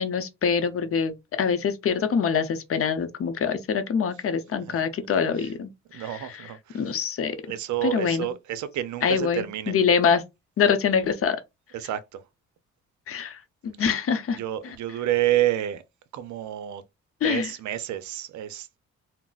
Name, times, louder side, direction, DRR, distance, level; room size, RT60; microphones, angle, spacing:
voice 1, 0.0-6.4 6.7-7.4 7.8-8.3 9.0-10.2 10.6-11.4 13.1-14.4 17.2-17.5, left 6 dB, 50° left, 0.6 m, -25 dB
voice 2, 5.9-6.8 7.5-9.7 11.7-12.2 14.4-15.8 16.1-16.8 17.2-18.8, right 12 dB, 75° right, 0.5 m, -29 dB
3.8 x 2.0 x 2.3 m
cardioid pair, 90°, 30 cm